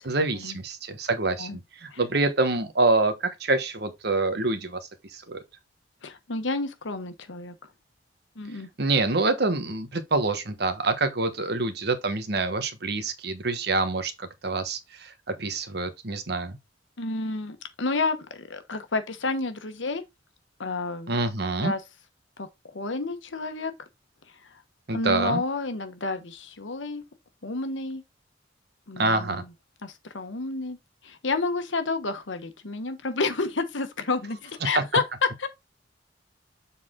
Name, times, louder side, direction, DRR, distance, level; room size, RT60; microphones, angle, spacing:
voice 1, 0.0-4.8 5.1-5.4 8.8-16.6 21.1-21.7 24.9-25.4 29.0-29.4 34.7-34.8, right 3 dB, 60° right, 1.1 m, -26 dB
voice 2, 6.0-7.5 8.3-8.7 17.0-20.1 20.6-21.2 21.6-21.8 22.4-23.7 24.3-24.6 24.9-27.0 27.4-28.0 28.9-29.5 29.8-30.8 31.0-35.0 35.4-35.5, left 3 dB, 85° left, 1.1 m, -30 dB
7.2 x 4.1 x 3.7 m
head